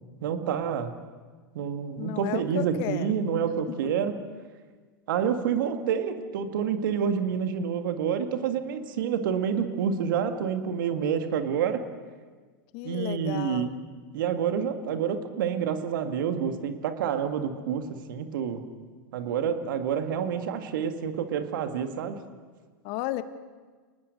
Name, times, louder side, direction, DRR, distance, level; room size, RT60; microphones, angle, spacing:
voice 1, 0.2-1.0 1.5-4.1 5.1-11.8 12.8-13.7 14.1-18.6 19.1-22.2, right 7 dB, 70° right, 7 dB, 2.1 m, -28 dB
voice 2, 2.0-3.1 12.7-13.7 22.8-23.2, left 16 dB, 55° left, 12 dB, 1.4 m, -33 dB
29.0 x 19.5 x 6.6 m, 1.4 s
hypercardioid pair, 105°, 11 cm